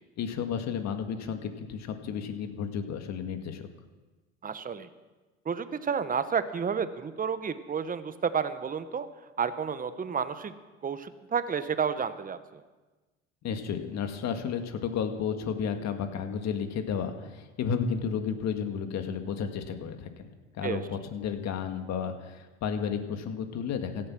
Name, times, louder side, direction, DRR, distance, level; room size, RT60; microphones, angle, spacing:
voice 1, 0.2-3.7 13.4-24.1, left 7 dB, 50° left, 6 dB, 2.0 m, -32 dB
voice 2, 4.4-4.9 5.4-9.1 9.4-10.5 10.8-12.6 20.6-20.8, right 6 dB, 25° right, 12 dB, 1.1 m, -31 dB
16.5 x 12.5 x 6.2 m, 1.2 s
hypercardioid pair, 80°, 35 cm